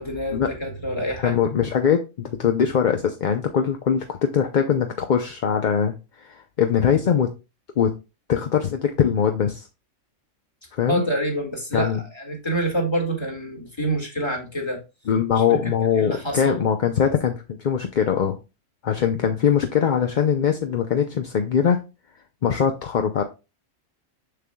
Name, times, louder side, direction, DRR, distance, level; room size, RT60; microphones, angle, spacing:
voice 1, 0.0-1.4 10.8-14.8 15.4-16.6, right 1 dB, 20° left, 2.0 m, -27 dB
voice 2, 1.2-7.3 7.8-7.9 8.3-9.7 10.8-11.0 11.7-12.0 15.1-18.4 18.8-21.8 22.4-23.2, left 7 dB, 50° left, 0.7 m, -22 dB
6.8 x 6.7 x 2.2 m
omnidirectional pair, 1.3 m